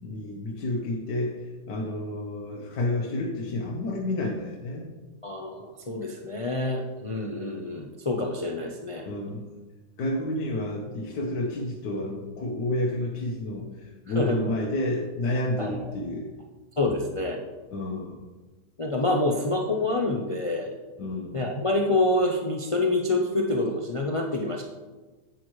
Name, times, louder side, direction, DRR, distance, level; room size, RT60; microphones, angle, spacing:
voice 1, 0.0-4.9 9.0-9.5 10.0-16.3 17.7-18.2 21.0-21.5, left 1 dB, 80° left, -2 dB, 1.6 m, -30 dB
voice 2, 5.2-9.1 14.2-14.4 15.6-15.7 16.8-17.4 18.8-20.7 21.3-24.6, left 2 dB, 55° left, 1 dB, 0.3 m, -27 dB
10.5 x 8.1 x 3.1 m, 1.3 s
omnidirectional pair, 1.8 m